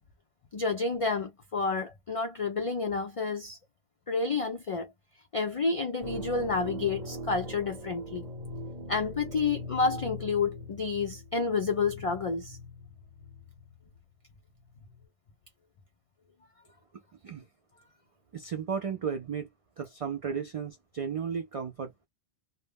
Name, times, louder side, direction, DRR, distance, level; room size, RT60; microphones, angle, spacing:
voice 1, 0.5-3.6 4.1-4.9 5.3-8.3 8.9-12.6, left 4 dB, 60° left, 0.3 m, -30 dB
sound 1, 6.0-14.0 14.6-15.0, left 1 dB, 35° right, 0.9 m, -41 dB
voice 2, 18.3-19.5 19.8-22.1, right 6 dB, 60° right, 0.3 m, -34 dB
2.1 x 2.0 x 3.3 m
omnidirectional pair, 1.1 m